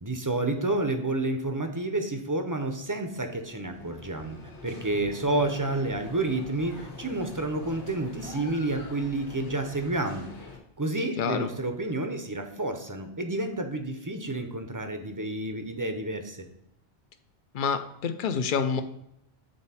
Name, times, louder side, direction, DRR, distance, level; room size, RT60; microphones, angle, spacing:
voice 1, 0.0-4.4 4.6-10.3 10.8-16.5, right 2 dB, 20° right, 6 dB, 0.6 m, -30 dB
sound 1, 2.5-10.6, left 3 dB, 90° left, 1.8 m, -44 dB
voice 2, 11.2-11.5 17.5-18.8, left 6 dB, 55° left, 9 dB, 0.7 m, -27 dB
7.9 x 4.3 x 4.2 m, 0.78 s
omnidirectional pair, 1.1 m